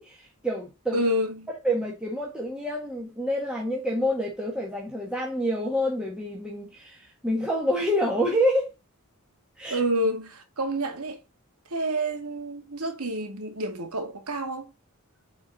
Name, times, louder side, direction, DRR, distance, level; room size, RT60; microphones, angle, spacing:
voice 1, 0.0-1.0 1.6-8.7 9.6-9.8, equal, 5° right, 1.5 m, -27 dB
voice 2, 0.9-1.5 9.7-11.2 11.7-14.7, right 1 dB, 85° right, 2.0 m, -28 dB
8.6 x 4.4 x 4.0 m
head